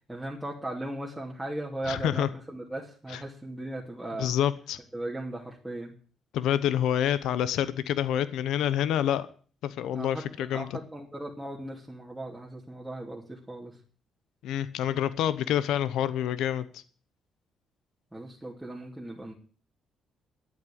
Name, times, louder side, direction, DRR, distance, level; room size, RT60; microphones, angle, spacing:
voice 1, 0.1-4.4 4.9-5.9 9.9-13.8 18.1-19.3, right 1 dB, 5° right, -3 dB, 2.7 m, -37 dB
voice 2, 1.9-2.3 4.2-4.8 6.3-9.3 9.6-10.7 14.4-16.8, left 10 dB, 80° left, 15 dB, 0.9 m, -27 dB
12.0 x 8.6 x 8.5 m, 0.42 s
cardioid pair, 105°, 0 cm